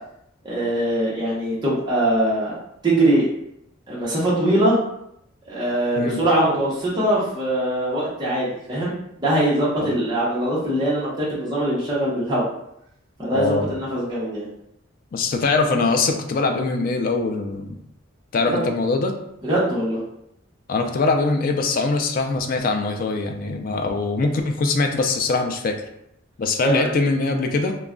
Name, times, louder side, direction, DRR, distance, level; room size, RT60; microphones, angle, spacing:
voice 1, 0.4-2.5 2.8-3.3 3.9-4.8 5.5-8.9 9.2-12.5 13.2-14.5 18.5-18.6 19.4-20.0 26.6-26.9, right 1 dB, 20° right, -8 dB, 0.7 m, -22 dB
voice 2, 13.3-13.7 15.1-17.8 18.3-19.2 20.7-25.8 26.4-27.8, left 3 dB, 45° left, 4 dB, 0.3 m, -22 dB
2.3 x 2.1 x 3.6 m, 0.77 s
head